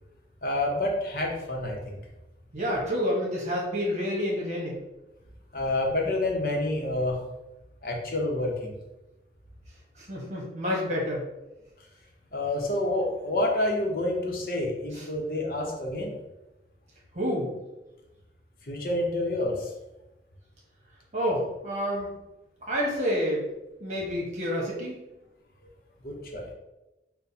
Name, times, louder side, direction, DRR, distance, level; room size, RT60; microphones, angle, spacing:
voice 1, 0.4-1.8 5.5-7.2 7.8-8.7 12.3-16.1 18.6-19.7 26.0-26.5, left 1 dB, 55° left, 0 dB, 0.8 m, -28 dB
voice 2, 2.5-4.8 10.0-11.2 14.9-15.1 17.1-17.5 21.1-22.1 22.6-23.5 23.8-25.0, equal, 40° right, -4 dB, 1.2 m, -28 dB
6.1 x 2.2 x 2.8 m, 1.0 s
head